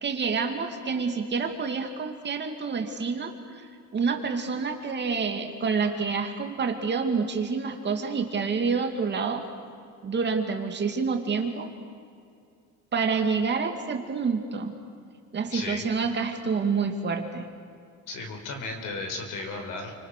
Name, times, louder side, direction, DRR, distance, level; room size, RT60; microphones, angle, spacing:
voice 1, 0.0-3.6 3.9-9.4 10.0-11.7 12.9-14.7 15.3-17.5, right 5 dB, 35° right, 4 dB, 2.4 m, -28 dB
voice 2, 15.5-15.9 18.1-19.9, left 3 dB, 70° left, 5 dB, 4.9 m, -35 dB
29.5 x 25.5 x 6.7 m, 2.4 s
cardioid pair, 175°, 32 cm